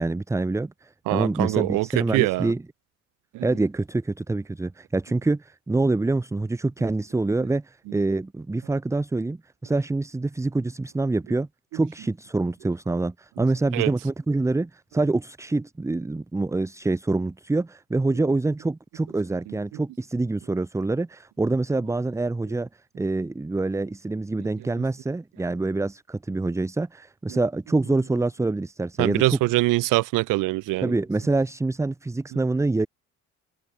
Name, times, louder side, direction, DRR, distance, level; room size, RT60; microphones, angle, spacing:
voice 1, 0.0-2.6 3.4-22.7 22.9-29.4 30.8-32.9, right 2 dB, 10° right, 0.6 m, -26 dB
voice 2, 1.1-2.5 3.3-3.5 13.7-13.9 19.7-19.8 27.3-27.4 29.0-30.9 32.3-32.4, right 20 dB, 85° right, 1.5 m, -24 dB
supercardioid pair, 75°, 31 cm